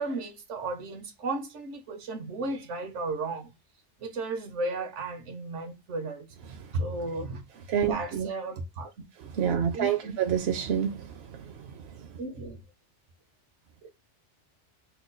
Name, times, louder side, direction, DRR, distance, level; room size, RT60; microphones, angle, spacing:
voice 1, 0.0-3.5 4.0-6.3 6.7-7.4 7.8-8.9 9.5-10.2 12.2-12.6 13.8-13.9, right 2 dB, 85° right, 1.2 m, -34 dB
voice 2, 7.7-8.3 9.4-11.4, right 8 dB, 70° right, 0.8 m, -28 dB
3.0 x 2.3 x 3.8 m
omnidirectional pair, 1.2 m